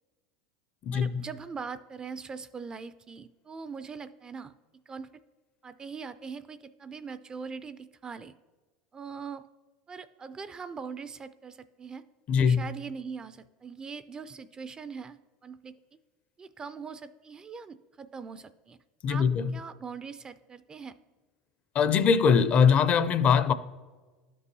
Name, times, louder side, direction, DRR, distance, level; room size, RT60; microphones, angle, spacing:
voice 1, 0.9-4.5 4.9-5.2 5.6-8.3 8.9-9.4 9.9-12.0 12.4-15.7 16.4-18.8 19.1-19.3 19.5-21.0, right 5 dB, 25° right, 0.3 m, -41 dB
voice 2, 12.3-12.6 19.0-19.6 21.7-23.5, left 6 dB, 40° left, 0.4 m, -22 dB
12.0 x 5.3 x 2.7 m
supercardioid pair, 100°, 3 cm